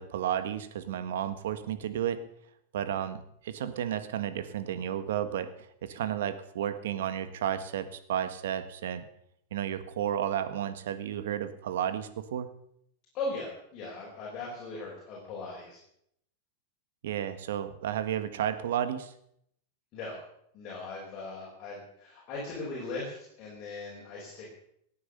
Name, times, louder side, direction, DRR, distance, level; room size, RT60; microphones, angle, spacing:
voice 1, 0.0-2.2 2.7-9.0 9.5-12.5 17.0-19.1, right 10 dB, 80° right, 11 dB, 1.6 m, -32 dB
voice 2, 13.1-15.8 19.9-20.2 20.5-24.5, left 3 dB, 30° left, -4 dB, 5.6 m, -39 dB
18.0 x 9.6 x 6.8 m, 0.73 s
supercardioid pair, 155°, 0 cm